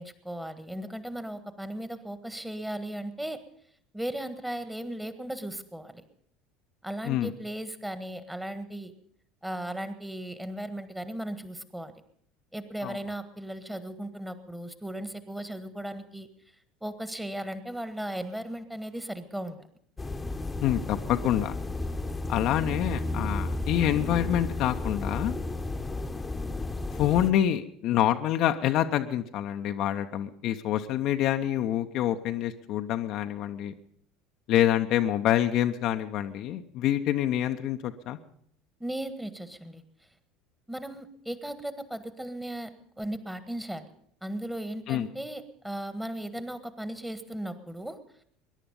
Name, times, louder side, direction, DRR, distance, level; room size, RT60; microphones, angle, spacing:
voice 1, 0.0-3.4 3.9-6.0 6.8-8.9 9.4-11.9 12.5-16.3 16.8-19.6 38.8-39.8 40.7-43.9 44.2-48.0, right 1 dB, 5° right, 11 dB, 1.5 m, -36 dB
sound 1, 20.0-27.3, left 2 dB, 15° left, 1.1 m, -33 dB
voice 2, 20.6-21.5 22.3-25.4 26.9-33.7 34.5-38.2 44.9-45.1, left 11 dB, 50° left, 6 dB, 0.8 m, -26 dB
21.5 x 11.0 x 5.4 m, 0.67 s
figure-of-eight pair, 65°, 0 cm